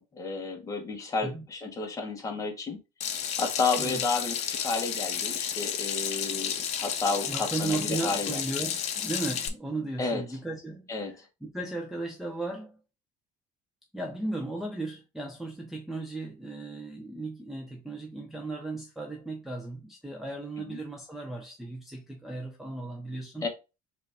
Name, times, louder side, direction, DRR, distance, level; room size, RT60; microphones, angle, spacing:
voice 1, 0.1-2.8 3.4-8.4 10.0-10.2 10.9-11.1 20.7-20.8 23.4-23.5, left 4 dB, 20° left, 1.0 m, -31 dB
Water tap faucet / Sink (filling or washing), 3.0-9.5, left 8 dB, 45° left, 0.7 m, -32 dB
voice 2, 7.3-12.8 13.9-23.5, right 2 dB, ahead, 0.5 m, -36 dB
4.9 x 2.4 x 3.3 m
cardioid pair, 150°, 15 cm